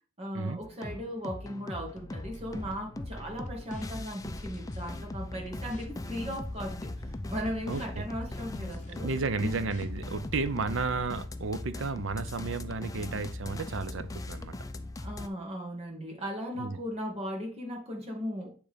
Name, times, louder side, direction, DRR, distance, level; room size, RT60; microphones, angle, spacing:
voice 1, 0.2-9.1 9.4-9.5 15.0-18.5, equal, 30° right, 1.6 m, -37 dB
sound 1, 0.6-15.3, left 2 dB, 15° left, 0.4 m, -40 dB
sound 2, 1.9-5.0 5.4-9.0 9.4-11.2, left 1 dB, 35° left, 1.1 m, -47 dB
voice 2, 7.7-8.0 9.0-14.6 16.5-16.8, right 4 dB, 65° right, 0.7 m, -33 dB
8.8 x 3.4 x 5.1 m
head